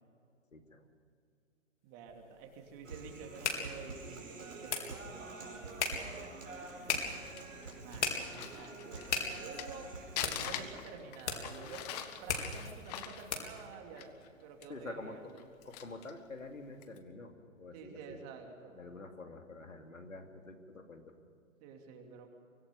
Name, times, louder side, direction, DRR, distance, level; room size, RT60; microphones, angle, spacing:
voice 1, 0.5-0.9 14.7-15.2 15.6-18.2 18.7-21.1, left 3 dB, 80° left, 4 dB, 2.7 m, -47 dB
voice 2, 1.8-5.8 7.7-9.0 9.3-15.4 17.7-18.8 21.6-22.3, right 5 dB, 30° right, 3 dB, 3.0 m, -50 dB
sound 1, 2.1-13.7, left 5 dB, 60° left, 4.1 m, -40 dB
Human voice, 2.8-10.9, right 3 dB, 75° right, 4.8 m, -47 dB
Crumpling crinkling, 6.8-9.8 10.2-14.3 14.6-14.7 15.3-16.2 16.7-17.0, left 10 dB, 30° left, 1.6 m, -43 dB
24.5 x 17.5 x 7.0 m, 2.5 s
figure-of-eight pair, 125°, 39 cm